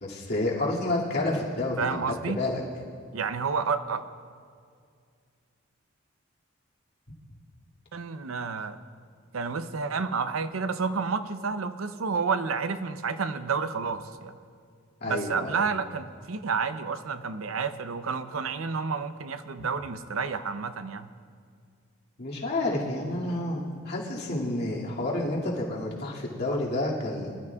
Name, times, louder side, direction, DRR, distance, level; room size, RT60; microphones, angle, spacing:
voice 1, 0.0-2.0 2.3-2.6 15.0-15.6 22.2-27.3, left 2 dB, 55° left, -4 dB, 2.3 m, -29 dB
voice 2, 1.8-2.4 3.1-4.1 7.9-8.8 9.3-14.3 15.1-21.1, right 5 dB, 85° right, 11 dB, 0.6 m, -30 dB
23.5 x 12.5 x 2.4 m, 2.2 s
head